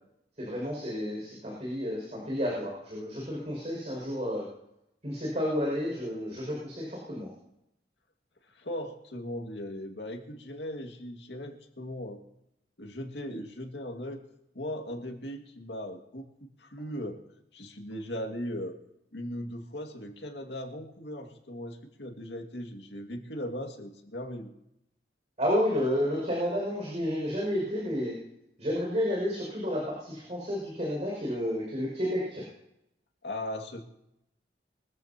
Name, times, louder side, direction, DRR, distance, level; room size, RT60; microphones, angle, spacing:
voice 1, 0.4-4.4 5.0-7.3 25.4-28.1 28.6-32.4, equal, 40° right, -4 dB, 6.1 m, -31 dB
voice 2, 8.5-12.2 12.8-14.2 14.5-17.2 17.5-18.8 19.1-24.5 33.2-33.8, left 1 dB, 75° left, 3 dB, 2.2 m, -38 dB
24.0 x 14.5 x 2.9 m, 0.82 s
head